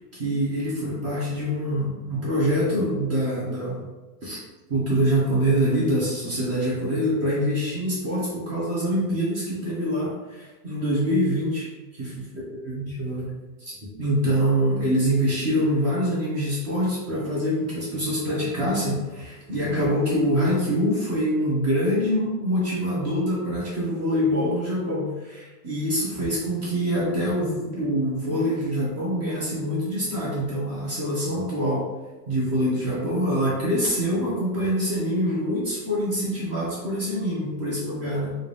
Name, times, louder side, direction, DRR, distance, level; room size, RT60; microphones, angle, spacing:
voice 1, 0.0-3.9 4.2-4.4 4.7-12.2 12.7-13.3 13.6-31.9 32.3-38.3, equal, 30° right, -6 dB, 1.1 m, -25 dB
3.7 x 2.7 x 3.3 m, 1.2 s
supercardioid pair, 150°, 50 cm